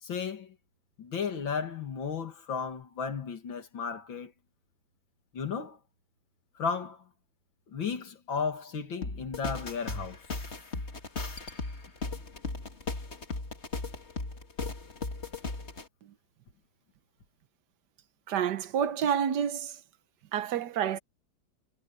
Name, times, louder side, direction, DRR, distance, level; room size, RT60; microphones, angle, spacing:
voice 1, 0.0-0.5 1.0-4.3 5.3-5.8 6.6-7.1 7.7-10.2, left 6 dB, 80° left, 2.9 m, -34 dB
sound 1, 9.0-15.8, left 3 dB, 35° left, 2.5 m, -37 dB
voice 2, 18.3-19.8 20.3-21.0, right 8 dB, 65° right, 1.4 m, -29 dB
omnidirectional pair, 2.1 m